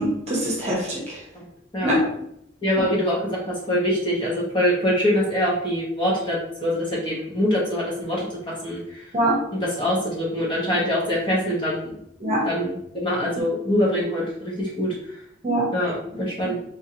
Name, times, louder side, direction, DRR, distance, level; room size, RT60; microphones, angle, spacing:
voice 1, 0.0-1.2 1.8-2.0 9.1-9.4 12.2-12.5 15.4-15.7, right 1 dB, 35° right, -4 dB, 1.1 m, -23 dB
voice 2, 2.6-9.1 9.5-12.0 12.4-15.2 15.7-16.6, equal, 25° left, -6 dB, 0.9 m, -24 dB
3.5 x 3.3 x 2.8 m, 0.75 s
head